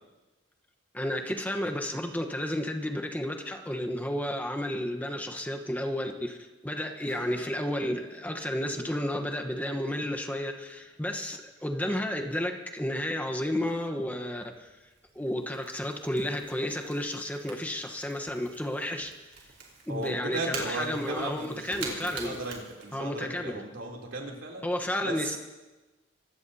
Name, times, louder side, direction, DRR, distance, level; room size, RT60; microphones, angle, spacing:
voice 1, 0.9-6.4 6.6-14.7 15.1-19.1 19.9-22.6 22.9-23.6 24.6-25.4, left 1 dB, 10° left, 4 dB, 1.1 m, -32 dB
Acoustic guitar / Strum, 7.0-11.6 13.5-13.6, right 1 dB, 85° left, 4.7 m, -54 dB
Crackle / Crack, 14.1-23.4, right 4 dB, 60° right, 4.2 m, -45 dB
voice 2, 19.9-24.7 25.0-25.1, right 2 dB, 85° right, -1 dB, 3.3 m, -36 dB
26.0 x 16.5 x 2.8 m, 1.1 s
head